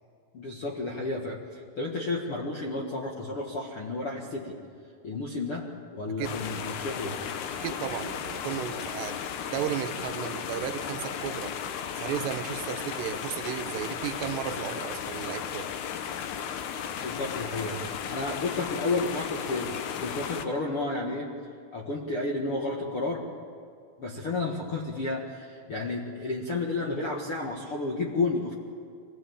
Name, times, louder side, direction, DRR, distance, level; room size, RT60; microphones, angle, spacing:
voice 1, 0.3-4.5 5.0-5.7 5.9-7.1 17.0-19.7 20.0-21.3 21.7-23.2 24.0-28.5, left 3 dB, 55° left, -1 dB, 1.6 m, -31 dB
sound 1, 6.2-20.4, left 8 dB, 85° left, 1.7 m, -35 dB
voice 2, 7.6-9.2 9.5-11.5 12.0-15.7, right 10 dB, 80° right, 7 dB, 3.0 m, -34 dB
23.5 x 17.5 x 8.6 m, 2.3 s
omnidirectional pair, 5.0 m